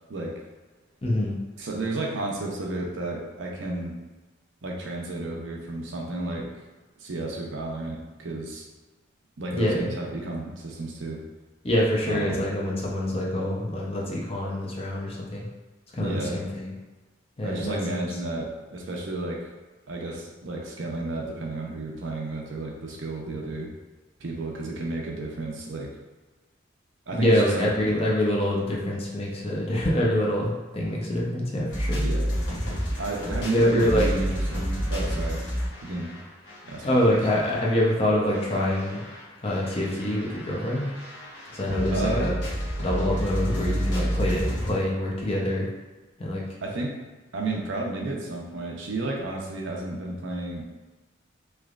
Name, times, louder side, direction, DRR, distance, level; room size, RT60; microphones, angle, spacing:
voice 1, 1.0-1.4 9.5-9.9 11.6-15.5 15.9-16.7 17.4-18.0 27.1-32.0 33.5-34.1 36.8-39.0 39.4-40.9 41.5-42.3 42.8-45.7 46.2-46.4, left 1 dB, 30° left, -3 dB, 0.6 m, -25 dB
voice 2, 1.6-4.0 4.6-6.5 7.0-8.6 9.4-11.2 12.1-12.4 16.0-16.4 17.4-19.5 19.9-23.7 24.2-25.9 27.1-27.7 32.0-32.3 33.0-35.4 35.8-36.1 36.7-37.2 41.9-42.3 46.6-47.0 47.3-50.6, right 2 dB, 80° right, -1 dB, 0.6 m, -32 dB
sound 1, 31.7-37.9 38.3-44.7, equal, 65° left, 0.9 m, -30 dB
3.3 x 3.0 x 2.4 m, 1.2 s
head